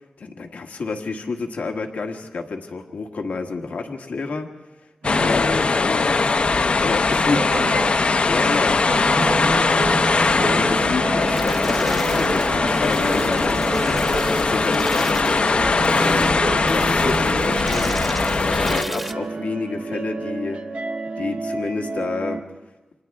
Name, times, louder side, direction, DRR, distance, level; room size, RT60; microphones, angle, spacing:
voice 1, 0.2-4.5 5.1-7.4 8.3-8.8 9.4-9.5 10.4-20.6 21.2-22.4, left 4 dB, 85° left, 1.5 m, -29 dB
sound 1, 5.0-18.8, left 4 dB, 55° left, 0.7 m, -20 dB
voice 2, 5.0-5.7 7.1-8.0 8.4-9.7 9.9-10.2, right 4 dB, 85° right, 0.8 m, -32 dB
sound 2, 9.1-22.4, right 3 dB, 65° right, 1.1 m, -29 dB
sound 3, 11.2-19.1, equal, 5° right, 1.0 m, -35 dB
30.0 x 26.0 x 3.5 m
wide cardioid pair, 80°, 3 cm